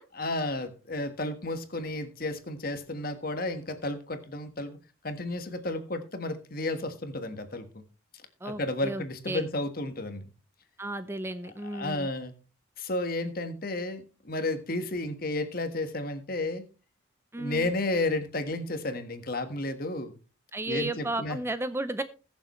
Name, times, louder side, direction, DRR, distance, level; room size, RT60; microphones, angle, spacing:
voice 1, 0.1-4.8 5.0-7.8 8.4-10.3 11.7-12.3 12.8-16.6 17.4-20.1 20.7-21.4, left 2 dB, 45° left, 9 dB, 1.4 m, -32 dB
voice 2, 8.4-9.5 10.8-12.1 17.3-17.7 20.5-22.0, right 2 dB, 10° right, 11 dB, 0.5 m, -33 dB
20.5 x 7.0 x 3.1 m, 0.33 s
head